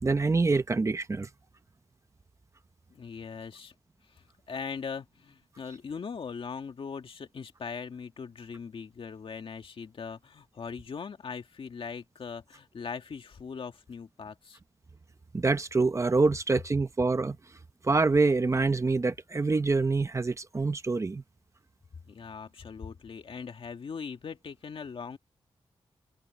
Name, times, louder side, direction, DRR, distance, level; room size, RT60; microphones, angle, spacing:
voice 1, 0.0-1.3 15.3-17.4 17.8-21.2, right 3 dB, 30° right, 0.9 m, -26 dB
voice 2, 2.9-3.7 4.1-14.6 22.1-25.2, left 6 dB, 60° left, 2.1 m, -40 dB
wide cardioid pair, 120°, 10 cm